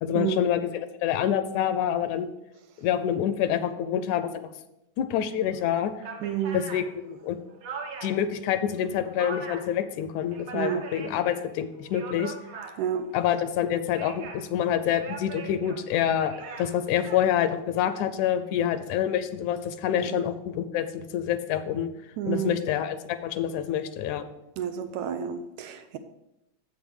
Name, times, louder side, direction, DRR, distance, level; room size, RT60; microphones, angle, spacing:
voice 1, 0.0-2.3 2.8-4.3 5.0-5.9 6.5-7.4 8.0-12.3 13.1-21.9 22.3-24.3, left 10 dB, 80° left, 11 dB, 1.9 m, -27 dB
sound 1, 5.5-5.6 6.0-8.3 8.7-9.8 10.1-11.4 11.8-13.0 13.7-14.5 14.9-17.2, right 4 dB, 60° right, 1.8 m, -40 dB
voice 2, 6.2-6.6 10.5-10.8 12.8-13.0 20.1-20.2 22.2-22.5 24.6-26.0, right 9 dB, 80° right, 8 dB, 1.8 m, -30 dB
7.8 x 7.2 x 4.8 m, 0.89 s
omnidirectional pair, 3.5 m